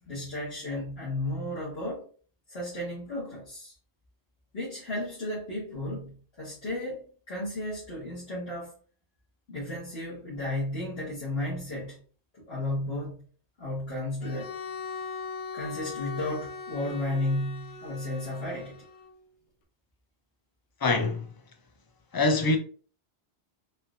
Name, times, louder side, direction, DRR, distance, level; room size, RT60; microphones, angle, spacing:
voice 1, 0.1-2.1 2.5-3.7 4.5-8.7 9.5-12.0 12.3-13.2 13.6-14.6 15.5-18.8, left 1 dB, 75° left, 1.8 m, -33 dB
Bowed string instrument, 14.2-19.2, left 4 dB, 55° left, 0.8 m, -40 dB
voice 2, 20.8-21.2 22.1-22.6, left 3 dB, 30° left, 0.4 m, -24 dB
4.2 x 2.6 x 2.4 m
omnidirectional pair, 1.1 m